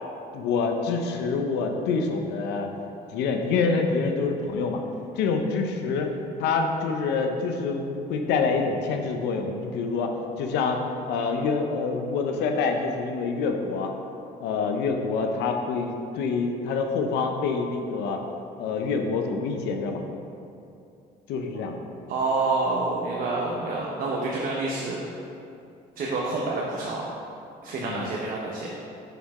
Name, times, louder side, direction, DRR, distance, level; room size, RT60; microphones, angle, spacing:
voice 1, 0.3-2.7 3.1-4.8 5.2-6.1 6.4-10.8 11.1-13.9 14.4-18.2 18.6-20.0 21.3-21.7 27.8-28.1, left 4 dB, 85° left, 4 dB, 0.8 m, -26 dB
voice 2, 22.1-25.0 26.0-27.0 27.6-28.7, right 3 dB, 55° right, -4 dB, 1.0 m, -28 dB
6.7 x 6.5 x 3.7 m, 2.6 s
cardioid pair, 110°, 17 cm